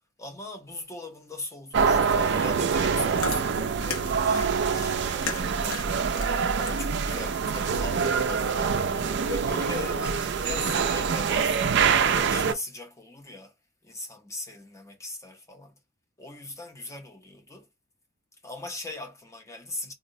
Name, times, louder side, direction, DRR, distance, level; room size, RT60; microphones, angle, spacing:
voice 1, 0.2-6.1 6.6-8.8 9.3-13.5 13.8-15.7 16.2-17.7 18.4-19.9, left 2 dB, 15° left, 0.5 m, -40 dB
sound 1, 1.7-12.5, right 6 dB, 50° right, 0.3 m, -25 dB
Chewing mastication, 2.8-9.3, left 4 dB, 85° left, 0.9 m, -39 dB
3.7 x 2.0 x 2.6 m
head